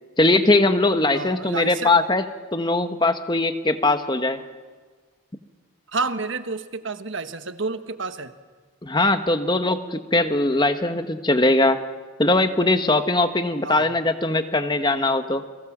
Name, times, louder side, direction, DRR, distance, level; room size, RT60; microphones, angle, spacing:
voice 1, 0.2-2.2 2.5-4.4 8.8-11.8 12.2-15.4, left 2 dB, 20° left, 9 dB, 1.2 m, -20 dB
voice 2, 1.1-2.0 5.9-8.3 13.6-13.9, right 3 dB, 65° right, 10 dB, 1.2 m, -30 dB
30.0 x 23.0 x 7.3 m, 1.4 s
head